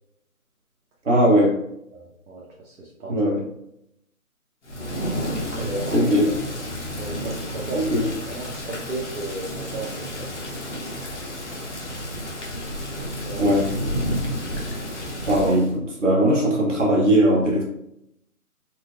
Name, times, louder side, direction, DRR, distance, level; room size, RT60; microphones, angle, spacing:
voice 1, 1.0-1.6 3.1-3.4 5.9-6.4 7.7-8.0 13.4-13.7 15.3-15.7 16.0-17.6, equal, 55° right, -3 dB, 1.1 m, -19 dB
voice 2, 1.9-3.3 5.5-6.1 7.0-10.3 10.7-11.3 13.2-13.8 15.4-15.5, right 2 dB, 75° right, -3 dB, 0.9 m, -34 dB
Thunder / Rain, 4.6-15.7, equal, 50° left, 0.8 m, -31 dB
4.3 x 2.1 x 2.5 m, 0.78 s
figure-of-eight pair, 170°, 45 cm